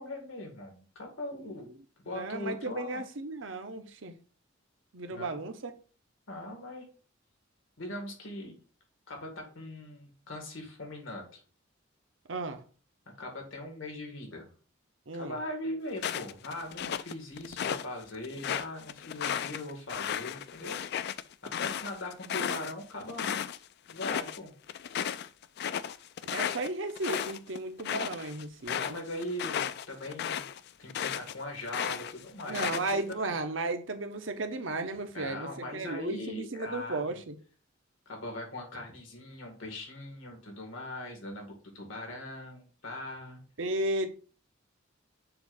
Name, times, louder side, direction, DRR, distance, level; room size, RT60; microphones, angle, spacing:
voice 1, 0.0-1.7 2.0-3.0 5.1-5.4 6.3-6.9 7.8-8.5 9.1-11.4 13.1-14.5 15.1-20.8 21.6-23.4 23.9-24.5 28.7-30.5 30.8-32.8 35.1-37.0 38.1-43.4, left 1 dB, 85° left, 2.0 m, -40 dB
voice 2, 2.1-4.1 4.9-5.7 12.3-12.6 15.1-15.4 26.3-29.0 32.5-37.3 43.6-44.1, right 2 dB, 70° right, 0.8 m, -34 dB
sound 1, 16.0-17.9 18.2-23.6 23.9-24.4 24.7-31.3 31.7-33.1, left 9 dB, 55° left, 0.3 m, -34 dB
6.9 x 2.6 x 5.5 m
head